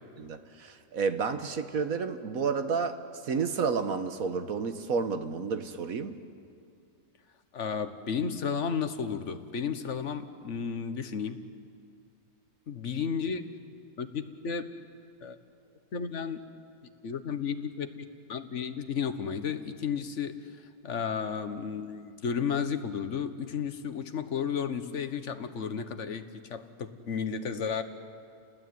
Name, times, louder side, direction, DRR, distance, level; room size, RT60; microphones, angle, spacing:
voice 1, 0.2-6.2, right 5 dB, 55° right, 9 dB, 1.6 m, -31 dB
voice 2, 7.5-11.4 12.7-13.5 14.0-14.6 15.2-15.4 15.9-16.4 17.0-17.9 18.3-20.4 20.8-27.8, left 6 dB, 45° left, 9 dB, 1.4 m, -33 dB
30.0 x 19.5 x 9.5 m, 2.4 s
omnidirectional pair, 1.8 m